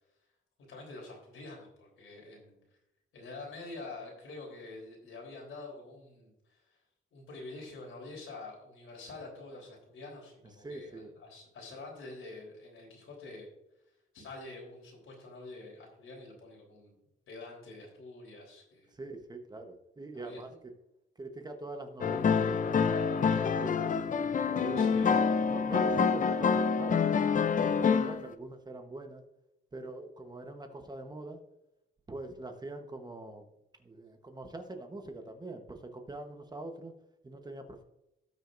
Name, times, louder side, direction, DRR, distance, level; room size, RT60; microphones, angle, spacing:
voice 1, 0.7-2.6 3.1-6.8 7.1-13.5 14.1-18.9 20.1-20.5 24.8-25.2, left 2 dB, 85° left, -1 dB, 3.6 m, -47 dB
voice 2, 10.6-11.1 18.9-20.5 21.2-24.0 24.4-25.0 25.5-29.2 29.7-31.4 32.1-33.5 33.8-36.9 37.2-37.8, right 2 dB, 20° right, 5 dB, 1.0 m, -43 dB
sound 1, 22.0-28.3, left 6 dB, 40° left, 0.5 m, -27 dB
17.0 x 6.4 x 2.6 m, 0.91 s
cardioid pair, 130°, 21 cm